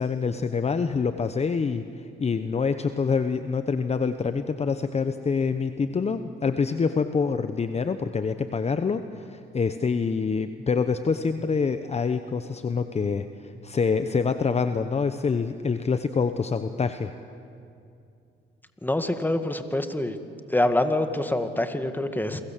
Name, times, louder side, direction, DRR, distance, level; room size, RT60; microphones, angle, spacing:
voice 1, 0.0-17.1, left 5 dB, 35° left, 10 dB, 1.0 m, -26 dB
voice 2, 18.8-20.2 20.5-22.4, left 1 dB, 10° left, 9 dB, 1.9 m, -25 dB
29.5 x 23.0 x 7.5 m, 2.5 s
cardioid pair, 90°, 20 cm